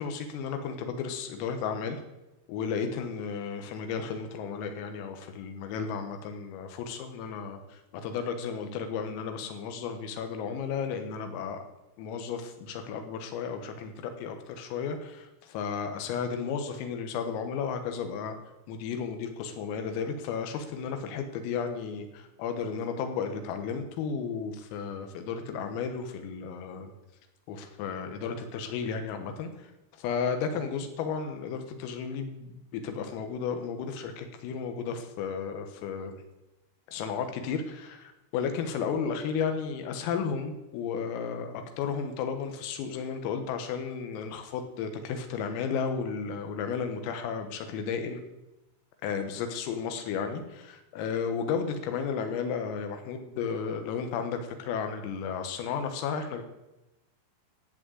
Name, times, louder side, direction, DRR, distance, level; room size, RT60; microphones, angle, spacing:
voice 1, 0.0-2.0 2.5-11.6 12.0-18.4 18.7-26.9 27.5-29.7 30.0-36.2 36.9-48.2 49.0-56.4, left 6 dB, 90° left, 7 dB, 4.1 m, -33 dB
15.0 x 6.5 x 8.1 m, 0.96 s
omnidirectional pair, 5.9 m